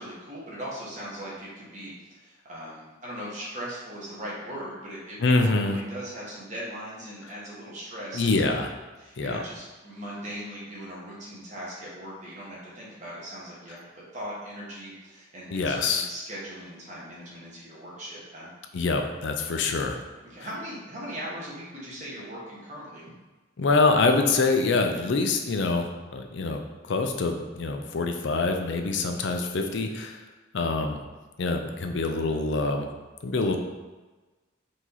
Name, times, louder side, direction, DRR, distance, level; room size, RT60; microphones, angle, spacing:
voice 1, 0.0-5.2 5.5-8.6 9.0-18.5 19.5-19.6 20.2-23.0, equal, 35° right, -6 dB, 1.3 m, -39 dB
voice 2, 5.2-5.8 8.1-8.7 9.2-9.4 15.5-16.1 18.7-20.0 23.6-25.9 26.1-26.6 26.9-30.2 30.5-31.0 31.4-32.9 33.2-33.6, left 3 dB, 65° left, 5 dB, 0.5 m, -25 dB
4.7 x 2.9 x 4.0 m, 1.2 s
head